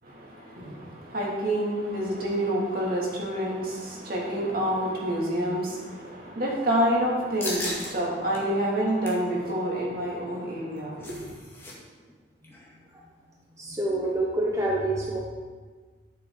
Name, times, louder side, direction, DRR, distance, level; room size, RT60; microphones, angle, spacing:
voice 1, 0.0-11.2, right 1 dB, 55° right, -4 dB, 2.7 m, -28 dB
sound 1, 7.4-7.9 8.3-8.4 8.8-9.3 10.5-11.7 12.0-12.1 12.4-12.7, left 1 dB, 15° left, 2.1 m, -35 dB
voice 2, 13.6-15.2, right 1 dB, 20° right, -3 dB, 1.0 m, -27 dB
13.0 x 7.5 x 4.0 m, 1.5 s
head